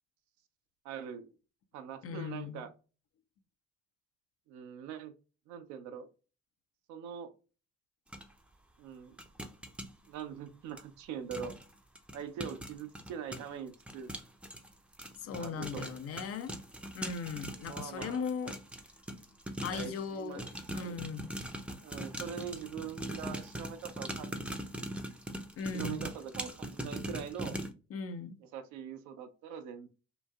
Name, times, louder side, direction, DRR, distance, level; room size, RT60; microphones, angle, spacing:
voice 1, 0.8-1.3 1.7-2.7 4.5-5.1 5.5-6.1 6.9-7.3 8.8-9.2 10.1-11.5 12.1-14.1 15.3-15.9 17.6-18.2 19.7-21.0 21.8-24.6 25.7-27.6 28.4-29.9, right 8 dB, 70° right, 8 dB, 0.6 m, -43 dB
voice 2, 2.0-2.6 15.2-16.5 16.9-18.6 19.6-20.4 20.7-21.3 25.6-26.1 27.9-28.4, left 5 dB, 50° left, 10 dB, 0.6 m, -38 dB
sound 1, 8.1-8.2 9.2-9.9 10.8-10.9 11.3-11.7 12.0-20.0 20.4-27.7, right 1 dB, 5° right, 0.6 m, -41 dB
3.0 x 2.6 x 2.3 m, 0.33 s
hypercardioid pair, 60°, 30 cm